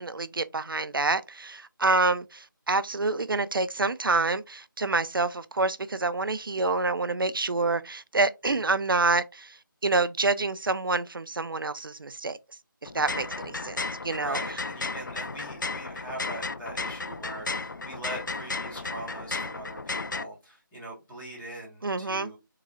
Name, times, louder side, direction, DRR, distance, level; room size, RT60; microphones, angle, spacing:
voice 1, 0.0-9.6 9.8-12.4 12.8-13.8 14.0-14.4 21.8-22.3, right 3 dB, 75° right, 0.4 m, -27 dB
sound 1, 12.8-20.2, left 3 dB, 60° left, 0.5 m, -34 dB
voice 2, 14.1-22.3, right 1 dB, ahead, 0.3 m, -42 dB
3.7 x 3.1 x 2.3 m
figure-of-eight pair, 165°, 12 cm